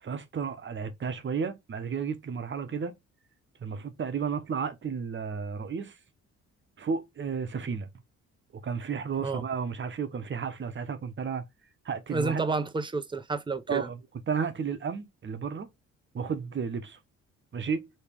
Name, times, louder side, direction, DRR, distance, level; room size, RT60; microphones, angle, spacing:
voice 1, 0.0-2.9 3.6-6.0 6.8-7.9 8.6-11.4 11.8-12.4 13.7-14.0 14.3-15.7 16.1-17.0 17.5-17.9, right 6 dB, 40° right, 1.0 m, -32 dB
voice 2, 12.1-13.9, right 3 dB, 15° right, 0.7 m, -30 dB
3.5 x 3.2 x 4.6 m
cardioid pair, 90°, 30 cm